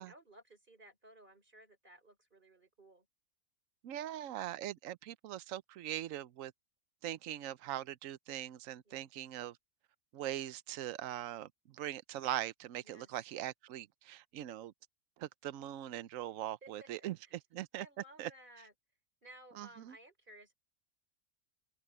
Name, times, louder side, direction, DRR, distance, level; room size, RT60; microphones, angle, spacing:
voice 1, 0.0-3.1 8.8-9.1 12.8-13.1 16.6-17.4 17.7-18.7 19.2-20.5, right 1 dB, 35° right, 5.1 m, -58 dB
voice 2, 3.8-6.5 7.0-9.6 10.1-14.7 15.2-17.1 17.5-17.8 18.2-18.3 19.6-19.7, right 12 dB, 70° right, 1.1 m, -41 dB
open air
omnidirectional pair, 1.5 m